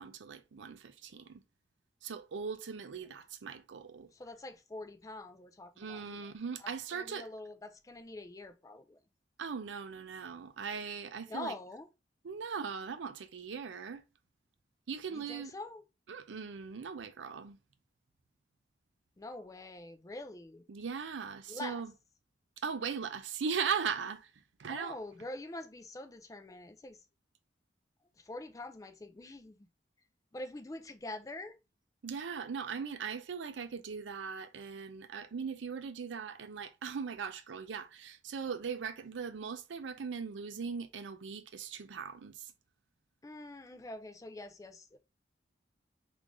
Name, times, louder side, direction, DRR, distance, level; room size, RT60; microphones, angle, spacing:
voice 1, 0.0-1.4 2.0-4.1 5.8-7.3 9.4-11.5 12.2-14.0 14.9-15.5 16.1-17.6 20.7-21.9 22.6-24.3 24.6-25.0 32.0-42.5, right 6 dB, 85° right, 0.5 m, -39 dB
voice 2, 4.1-6.3 6.6-9.0 11.2-11.9 15.1-15.8 19.2-20.6 21.5-21.8 24.7-27.0 28.2-29.7 30.3-31.6 43.2-45.0, left 2 dB, 20° left, 0.3 m, -45 dB
3.7 x 2.5 x 3.0 m
head